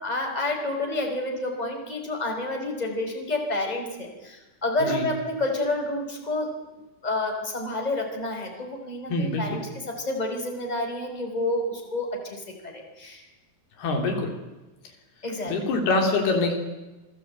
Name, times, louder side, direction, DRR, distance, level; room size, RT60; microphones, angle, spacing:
voice 1, 0.0-6.5 7.0-13.3 15.2-15.5, left 2 dB, 10° left, 2 dB, 5.0 m, -29 dB
voice 2, 9.1-9.6 13.8-14.3 15.5-16.5, left 3 dB, 80° left, 3 dB, 5.5 m, -25 dB
27.5 x 19.5 x 9.0 m, 1.1 s
omnidirectional pair, 4.5 m